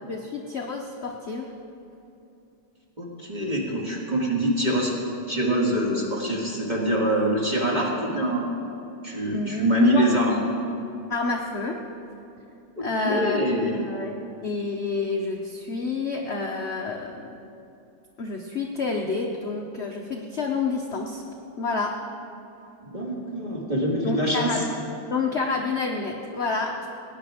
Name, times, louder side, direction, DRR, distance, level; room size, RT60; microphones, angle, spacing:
voice 1, 0.1-1.5 9.3-10.1 11.1-11.8 12.8-14.1 14.4-17.3 18.2-21.2 21.6-21.9 24.0-24.6 25.1-26.9, left 4 dB, 50° left, 1 dB, 0.8 m, -28 dB
voice 2, 3.0-4.9 5.3-8.5 9.0-10.4 12.8-13.8 22.8-24.6, right 1 dB, 25° right, -3 dB, 1.8 m, -25 dB
19.0 x 9.7 x 4.9 m, 2.8 s
omnidirectional pair, 2.2 m